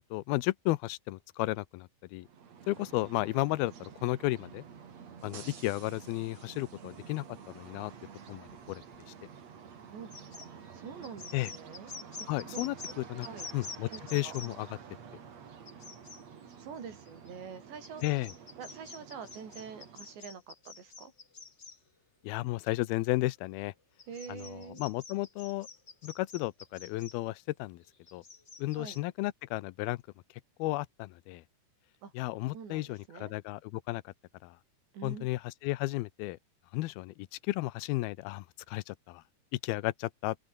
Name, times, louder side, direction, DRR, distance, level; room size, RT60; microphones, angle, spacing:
voice 1, 0.0-2.3 2.7-4.6 5.2-7.9 8.3-8.8 11.3-11.5 12.3-13.3 13.5-14.7 18.0-18.3 22.2-23.7 24.3-25.7 26.0-27.8 28.1-28.2 28.6-30.0 30.6-31.4 32.1-34.1 34.4-34.6 35.0-36.4 36.7-39.2 39.5-40.4, left 19 dB, 75° left, 2.4 m, -33 dB
sound 1, 2.2-20.3, right 7 dB, 45° right, 3.4 m, -50 dB
sound 2, 10.1-12.9 13.2-14.5 15.6-16.2 16.9-17.3 17.8-21.8 22.6-22.7 24.0-27.2 27.8-29.0, left 4 dB, 45° left, 0.9 m, -47 dB
voice 2, 10.7-11.9 12.5-12.6 13.2-13.5 13.9-14.4 16.6-18.0 18.6-21.1 24.1-24.8 28.8-29.0 32.0-32.1 32.5-33.3 34.9-35.3, right 6 dB, 80° right, 7.1 m, -45 dB
open air
omnidirectional pair, 5.0 m